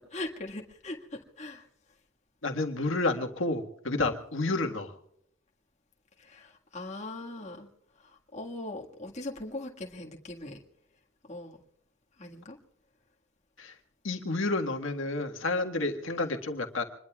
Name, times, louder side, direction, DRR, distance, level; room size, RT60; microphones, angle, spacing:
voice 1, 0.1-1.7 4.7-4.8 6.2-7.7 8.0-10.6 11.3-11.6 12.2-12.6 16.2-16.4, left 2 dB, 35° left, 0 dB, 1.8 m, -40 dB
voice 2, 2.4-4.9 13.6-13.7 14.0-16.8, left 2 dB, 70° left, 4 dB, 1.7 m, -30 dB
26.5 x 21.5 x 2.4 m, 0.72 s
head